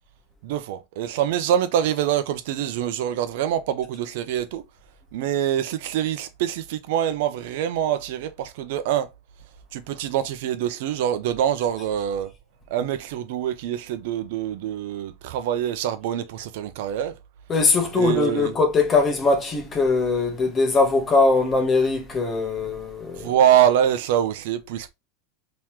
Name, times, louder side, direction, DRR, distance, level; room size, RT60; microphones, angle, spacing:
voice 1, 0.4-4.6 5.1-9.1 9.7-12.3 12.7-17.1 17.9-18.6 23.2-24.9, right 10 dB, 65° right, 0.6 m, -24 dB
voice 2, 17.5-23.3, left 3 dB, 20° left, 1.0 m, -21 dB
3.7 x 3.0 x 3.0 m
supercardioid pair, 160°, 0 cm